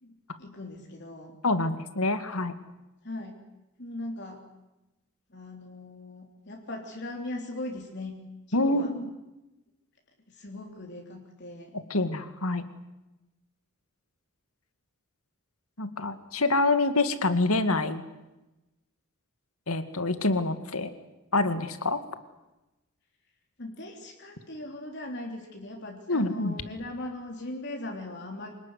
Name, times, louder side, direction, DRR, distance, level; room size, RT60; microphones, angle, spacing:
voice 1, 0.0-1.4 3.0-3.4 3.8-4.4 5.3-8.2 8.5-8.9 10.3-11.7 23.6-28.5, left 1 dB, 50° left, 1 dB, 3.5 m, -39 dB
voice 2, 1.4-2.5 8.5-9.0 11.9-12.6 15.8-18.0 19.7-20.9 21.3-22.0 26.1-26.6, left 2 dB, 80° left, 11 dB, 2.2 m, -26 dB
27.0 x 19.5 x 9.7 m, 1.0 s
head